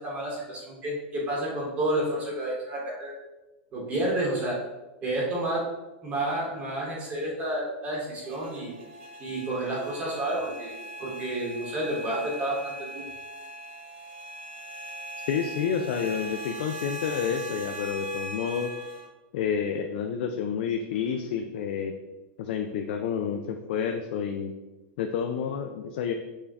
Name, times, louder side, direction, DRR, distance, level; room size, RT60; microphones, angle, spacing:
voice 1, 0.0-3.1 3.7-4.6 5.0-5.7 6.0-8.7 9.2-10.7 11.0-13.0, right 1 dB, 25° right, -3 dB, 1.0 m, -30 dB
sound 1, 8.2-19.1, right 1 dB, 75° right, 0.8 m, -40 dB
voice 2, 15.3-18.7 19.3-21.9 22.4-24.5 25.0-26.1, left 7 dB, 55° left, 5 dB, 0.3 m, -29 dB
6.3 x 2.2 x 3.5 m, 1.1 s
supercardioid pair, 160°, 6 cm